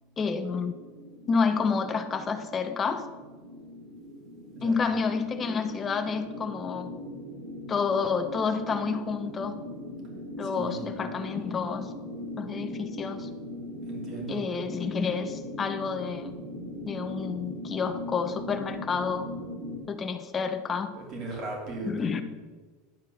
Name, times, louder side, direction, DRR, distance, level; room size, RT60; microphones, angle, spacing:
voice 1, 0.2-0.7 1.3-3.1 4.6-6.9 7.7-9.5 10.4-11.9 12.4-13.3 14.3-16.3 16.9-19.2 19.9-20.9 21.8-22.2, left 5 dB, 20° left, 8 dB, 0.8 m, -29 dB
sound 1, 0.7-19.8, left 1 dB, 75° right, 3.6 m, -40 dB
voice 2, 10.4-10.9 13.9-14.4 20.9-22.2, right 2 dB, 40° right, 0 dB, 2.8 m, -37 dB
11.5 x 4.6 x 6.5 m, 1.3 s
supercardioid pair, 145°, 0 cm